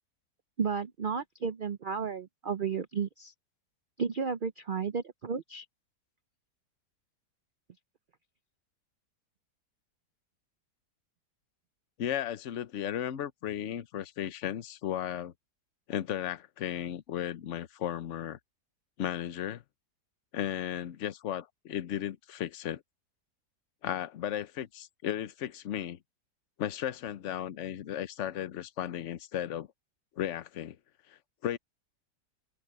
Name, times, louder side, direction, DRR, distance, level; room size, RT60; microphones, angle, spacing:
voice 1, 0.6-3.3 4.0-5.7, right 6 dB, 85° right, 0.4 m, -33 dB
voice 2, 12.0-15.3 15.9-18.4 19.0-19.6 20.3-22.8 23.8-26.0 26.6-29.7 30.2-30.8 31.1-31.6, left 10 dB, 55° left, 1.0 m, -35 dB
open air
omnidirectional pair, 1.8 m